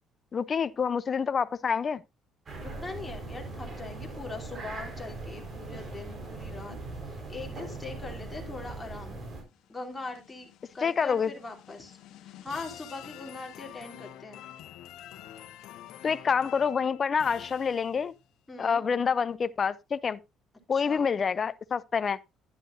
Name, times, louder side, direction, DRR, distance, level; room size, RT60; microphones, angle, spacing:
voice 1, 0.3-2.0 10.8-11.3 16.0-18.1 18.6-20.2 20.7-22.2, left 6 dB, 35° left, 0.6 m, -27 dB
sound 1, 2.5-9.4, right 2 dB, 35° right, 4.6 m, -40 dB
voice 2, 2.6-9.2 9.7-10.5 10.7-12.0 12.2-14.4 18.5-18.8 20.7-21.1, left 3 dB, 15° left, 3.2 m, -41 dB
sound 2, 9.3-18.2, left 12 dB, 75° left, 1.2 m, -48 dB
11.0 x 10.5 x 2.6 m
cardioid pair, 120°, 0 cm